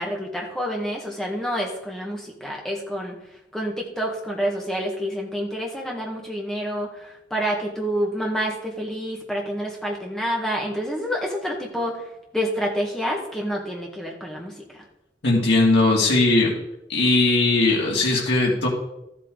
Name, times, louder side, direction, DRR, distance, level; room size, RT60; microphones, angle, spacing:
voice 1, 0.0-3.1 3.5-12.0 12.3-14.8, equal, 5° left, -2 dB, 1.9 m, -28 dB
voice 2, 15.2-16.6 16.9-18.7, left 2 dB, 90° left, -3 dB, 2.8 m, -19 dB
13.0 x 8.2 x 4.1 m, 0.87 s
head